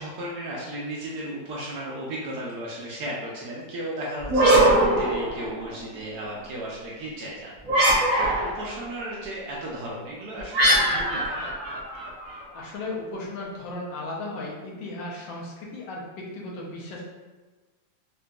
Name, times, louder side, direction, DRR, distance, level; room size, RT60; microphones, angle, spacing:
voice 1, 0.0-7.5 8.2-11.5, right 1 dB, 70° right, -4 dB, 1.0 m, -35 dB
sound 1, 4.2-5.8 7.6-8.7 10.5-12.4, right 1 dB, 35° right, 0.9 m, -21 dB
voice 2, 12.5-17.0, left 2 dB, 80° left, -3 dB, 1.4 m, -35 dB
3.8 x 2.5 x 2.2 m, 1.3 s
omnidirectional pair, 2.1 m